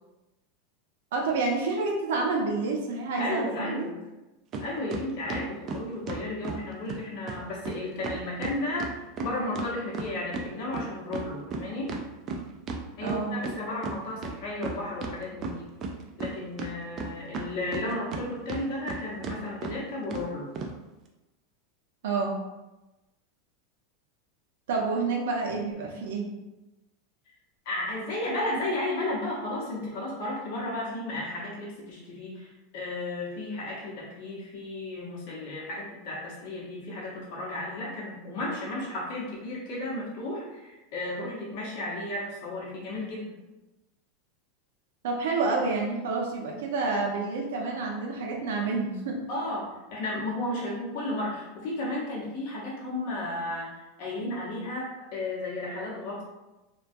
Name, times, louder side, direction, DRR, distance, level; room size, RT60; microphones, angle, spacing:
voice 1, 1.1-3.9 13.0-13.4 22.0-22.3 24.7-26.3 45.0-49.2, right 3 dB, 80° right, 0 dB, 0.6 m, -28 dB
voice 2, 3.2-4.0 4.6-11.9 13.0-15.7 16.2-20.5 27.6-43.3 49.3-56.2, left 2 dB, 55° left, -5 dB, 0.8 m, -34 dB
sound 1, 4.5-4.6 4.9-6.6 6.9-7.0 7.3-7.4 7.6-7.8 8.0-10.5 10.7-13.5 13.8-13.9 14.2-15.1 15.4-16.3 16.6-18.2 18.5-19.0 19.2-19.4 19.6-19.7 20.1-20.2 20.6-20.7, right 4 dB, 35° right, 0.3 m, -34 dB
2.2 x 2.2 x 2.6 m, 1.0 s
supercardioid pair, 145°, 0 cm